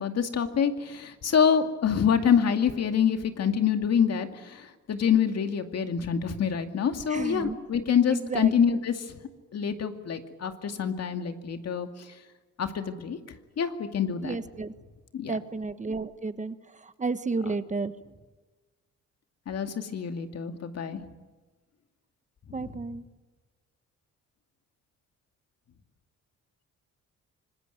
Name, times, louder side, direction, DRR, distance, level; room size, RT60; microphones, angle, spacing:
voice 1, 0.0-9.2 9.5-11.9 12.6-13.2 13.6-14.4 15.1-15.4 19.5-21.0 22.5-22.8, left 7 dB, 55° left, 6 dB, 2.4 m, -26 dB
voice 2, 7.1-7.6 8.1-8.5 14.2-14.7 15.3-16.5 17.0-17.9 22.5-23.0, right 3 dB, 25° right, 12 dB, 1.3 m, -31 dB
25.5 x 19.5 x 9.2 m, 1.3 s
cardioid pair, 90°, 30 cm